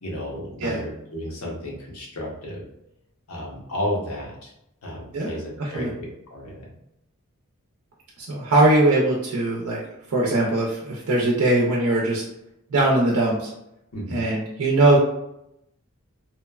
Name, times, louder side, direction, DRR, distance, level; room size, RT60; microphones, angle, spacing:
voice 1, 0.0-2.6 3.3-4.5 4.8-5.9 6.3-6.8 13.9-14.2, left 1 dB, 80° left, -3 dB, 0.8 m, -32 dB
voice 2, 5.6-5.9 8.2-9.8 10.1-12.2 12.7-13.5 14.1-15.0, right 2 dB, 80° right, -3 dB, 0.5 m, -20 dB
2.9 x 2.1 x 2.3 m, 0.83 s
head